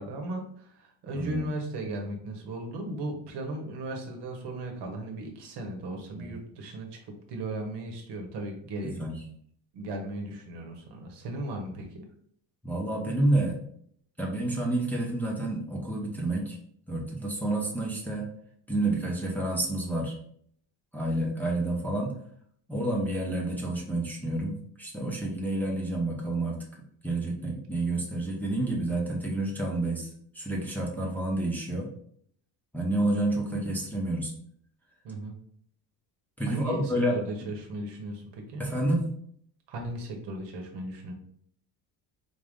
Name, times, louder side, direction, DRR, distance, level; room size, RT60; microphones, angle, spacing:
voice 1, 0.0-9.0 9.7-12.0 35.0-35.4 36.5-38.6 39.7-41.1, right 1 dB, 60° right, 3 dB, 1.1 m, -36 dB
voice 2, 1.1-1.5 5.9-6.4 8.8-9.2 12.6-13.6 14.2-16.6 16.9-18.2 18.7-20.2 20.9-22.1 22.7-26.6 27.0-30.1 30.3-31.9 32.7-34.3 36.4-37.2 38.6-39.1, right 2 dB, 5° left, -3 dB, 0.8 m, -29 dB
4.0 x 2.5 x 3.6 m, 0.64 s
cardioid pair, 110°, 46 cm